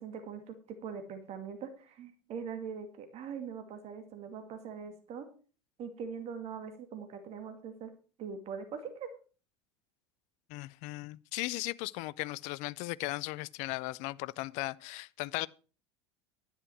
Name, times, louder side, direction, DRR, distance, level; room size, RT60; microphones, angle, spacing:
voice 1, 0.0-5.3 5.8-7.9 8.2-9.1, right 6 dB, 45° right, 2.4 m, -42 dB
voice 2, 10.5-15.5, left 20 dB, 50° left, 0.5 m, -37 dB
11.0 x 9.7 x 4.7 m
figure-of-eight pair, 75°, 15 cm